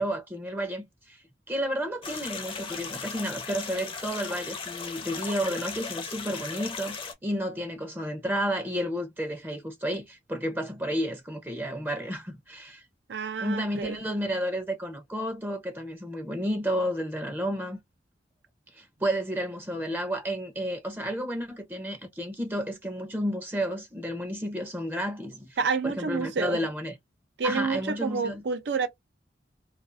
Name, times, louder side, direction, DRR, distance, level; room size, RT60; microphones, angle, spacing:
voice 1, 0.0-12.8 13.4-17.8 18.7-25.6 25.8-27.0 27.4-28.4, equal, 10° right, 0.6 m, -31 dB
sound 1, 2.0-7.1, left 5 dB, 30° left, 0.6 m, -37 dB
voice 2, 13.1-14.0 25.6-26.6 27.4-28.9, right 5 dB, 75° right, 0.5 m, -29 dB
2.4 x 2.4 x 2.5 m
head